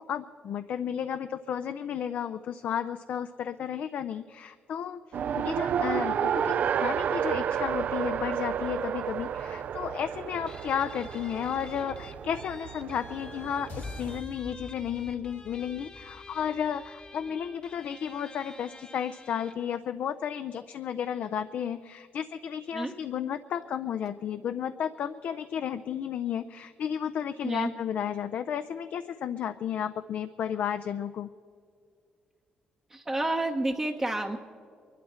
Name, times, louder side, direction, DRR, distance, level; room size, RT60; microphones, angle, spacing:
voice 1, 0.0-5.0 5.4-31.3, left 8 dB, 65° left, 9 dB, 0.4 m, -33 dB
Race car auto racing, 5.1-14.2, right 8 dB, 55° right, 0.3 m, -31 dB
Guitar, 10.5-19.7, left 3 dB, 30° left, 1.0 m, -50 dB
sound 1, 13.7-18.0, left 3 dB, 85° left, 2.6 m, -46 dB
voice 2, 32.9-34.4, right 2 dB, 20° right, 2 dB, 0.8 m, -29 dB
23.0 x 12.5 x 4.3 m, 2.2 s
cardioid pair, 105°, 3 cm